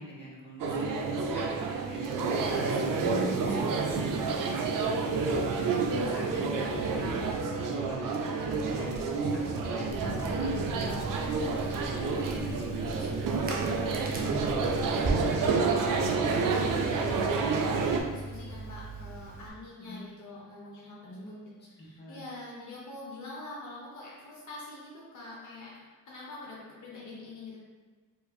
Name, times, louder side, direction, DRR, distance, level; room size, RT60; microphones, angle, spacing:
voice 1, 0.0-2.0 2.5-7.1 7.6-8.9 9.3-14.4 15.4-15.7 19.8-20.0 21.0-22.2, equal, 30° left, -5 dB, 0.9 m, -44 dB
sound 1, 0.6-18.0, right 4 dB, 70° right, 0.5 m, -29 dB
voice 2, 2.6-3.0 15.5-16.2 16.4-21.3 21.7-25.7 26.1-27.6, left 2 dB, 60° left, -5 dB, 0.7 m, -45 dB
sound 2, 3.0-17.3, right 1 dB, 90° right, 1.4 m, -46 dB
Crackle, 9.9-19.5, right 2 dB, 25° right, 0.6 m, -38 dB
4.7 x 2.6 x 2.3 m, 1.4 s
wide cardioid pair, 120°, 33 cm